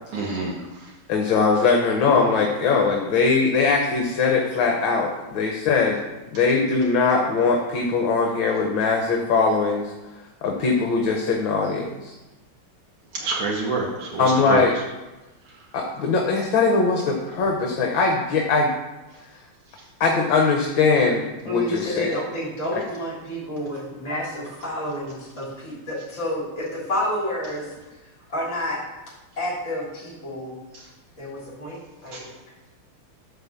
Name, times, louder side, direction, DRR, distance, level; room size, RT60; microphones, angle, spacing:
voice 1, 0.1-0.5 13.1-14.6 32.1-32.2, right 4 dB, 80° right, -3 dB, 2.2 m, -26 dB
voice 2, 1.1-6.0 6.3-9.9 10.4-12.1 14.2-14.7 15.7-18.7 20.0-22.2 22.7-22.8, left 4 dB, 65° left, 2 dB, 1.8 m, -21 dB
voice 3, 21.4-27.7 28.3-28.8 29.4-30.5 31.2-32.2, equal, 35° left, -8 dB, 3.5 m, -29 dB
12.0 x 4.2 x 7.2 m, 1.1 s
omnidirectional pair, 2.3 m